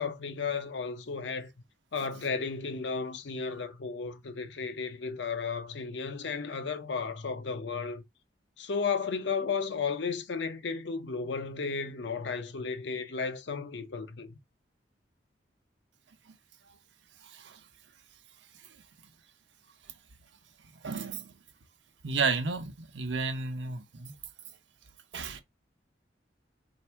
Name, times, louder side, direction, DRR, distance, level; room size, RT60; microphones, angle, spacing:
voice 1, 0.0-1.5 1.9-8.0 8.6-14.4, left 5 dB, 75° left, 0.6 m, -34 dB
voice 2, 17.2-17.7 18.6-18.8 20.7-21.3 22.0-24.2 25.1-25.4, right 4 dB, 85° right, 0.8 m, -33 dB
3.5 x 2.7 x 4.4 m
head